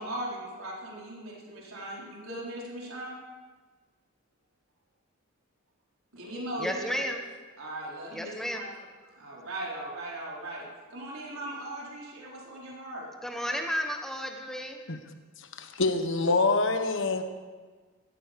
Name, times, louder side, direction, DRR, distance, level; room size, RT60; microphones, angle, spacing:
voice 1, 0.0-3.1 6.1-7.0 7.6-8.7 9.1-13.1, right 1 dB, 85° right, -4 dB, 4.4 m, -38 dB
voice 2, 6.6-7.2 8.1-8.6 13.2-14.8, equal, ahead, 3 dB, 1.0 m, -32 dB
voice 3, 15.4-17.2, left 3 dB, 65° left, 8 dB, 1.3 m, -26 dB
16.5 x 14.0 x 5.2 m, 1.4 s
head